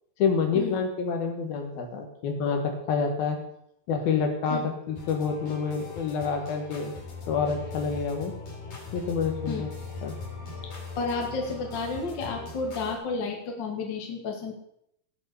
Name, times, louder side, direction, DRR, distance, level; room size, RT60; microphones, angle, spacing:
voice 1, 0.2-3.4 3.9-6.9 7.3-8.3 8.9-9.7 10.0-10.1, left 5 dB, 75° left, 4 dB, 3.3 m, -28 dB
sound 1, 5.0-13.0, left 3 dB, 50° left, 5.1 m, -40 dB
voice 2, 11.0-14.5, left 4 dB, 35° left, 2 dB, 2.4 m, -31 dB
18.5 x 6.2 x 6.9 m, 0.76 s
omnidirectional pair, 4.4 m